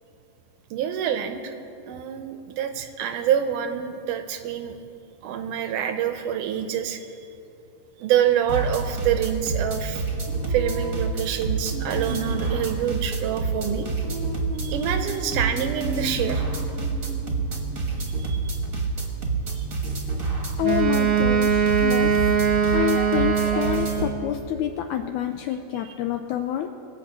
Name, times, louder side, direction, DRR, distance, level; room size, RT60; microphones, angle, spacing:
voice 1, 0.7-1.6 1.9-4.8 5.2-7.1 8.0-10.0 10.5-13.9 14.6-16.4 18.2-18.5 19.6-19.7 25.9-26.0, right 9 dB, 75° right, 7 dB, 2.2 m, -26 dB
sound 1, 8.5-24.1, right 4 dB, 35° right, 1.4 m, -28 dB
Female singing, 10.3-17.9, right 1 dB, 25° left, 0.3 m, -37 dB
voice 2, 20.6-22.2 22.5-26.7, left 11 dB, 80° left, 6 dB, 1.7 m, -28 dB
Wind instrument woodwind instrument, 20.6-24.3, right 6 dB, 60° right, 1.8 m, -22 dB
21.0 x 8.0 x 6.0 m, 2.6 s
omnidirectional pair, 3.9 m